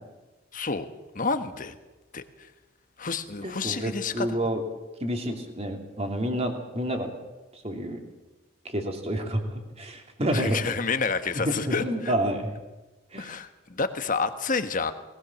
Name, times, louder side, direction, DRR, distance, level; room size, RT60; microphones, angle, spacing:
voice 1, 0.5-0.9 1.1-1.7 2.1-2.2 3.0-4.3 10.3-12.1 13.2-14.9, left 4 dB, 45° left, 9 dB, 1.4 m, -29 dB
voice 2, 3.4-4.6 5.0-7.1 7.6-8.0 8.6-10.6 11.7-12.5 13.1-13.4, right 1 dB, 35° right, 3 dB, 2.9 m, -29 dB
19.5 x 18.5 x 7.3 m, 1.1 s
head